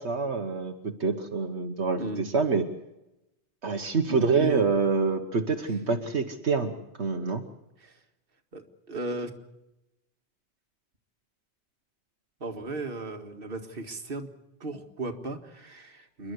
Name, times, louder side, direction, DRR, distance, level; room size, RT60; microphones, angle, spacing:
voice 1, 0.0-2.6 3.6-7.4, right 4 dB, 80° right, 4 dB, 1.5 m, -26 dB
voice 2, 2.0-2.3 4.1-4.7 7.8-7.9 8.5-8.6 8.9-9.3 12.4-14.3 14.6-16.3, right 2 dB, 55° right, 5 dB, 2.0 m, -35 dB
28.5 x 11.5 x 9.7 m, 0.92 s
omnidirectional pair, 1.1 m